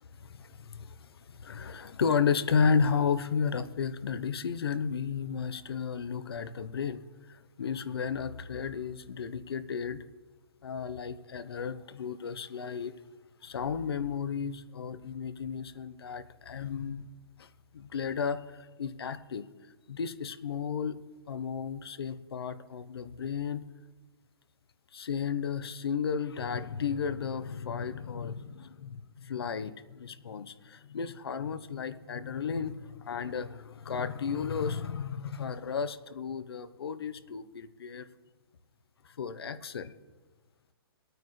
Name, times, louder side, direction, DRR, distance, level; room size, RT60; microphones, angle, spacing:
voice 1, 0.2-7.0 7.3-10.0 10.6-13.0 13.4-17.1 17.4-17.5 17.7-19.4 19.9-21.0 21.3-23.6 24.9-38.1 39.0-39.9, left 6 dB, 75° left, 12 dB, 0.9 m, -33 dB
22.0 x 9.1 x 3.3 m, 1.3 s
hypercardioid pair, 180°, 13 cm